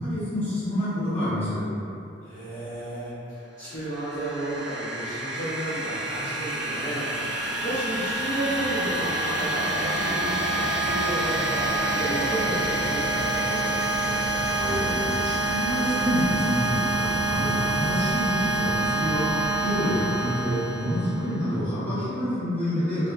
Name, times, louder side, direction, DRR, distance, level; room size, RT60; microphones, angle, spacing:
voice 1, 0.0-1.6 14.4-23.1, equal, 15° left, -16 dB, 1.4 m, -28 dB
voice 2, 2.2-14.1, right 1 dB, 45° left, -14 dB, 0.6 m, -33 dB
sound 1, 3.7-21.4, right 2 dB, 60° right, 0.3 m, -27 dB
sound 2, 14.6-18.1, equal, 10° right, 1.1 m, -39 dB
2.9 x 2.0 x 2.3 m, 2.7 s
head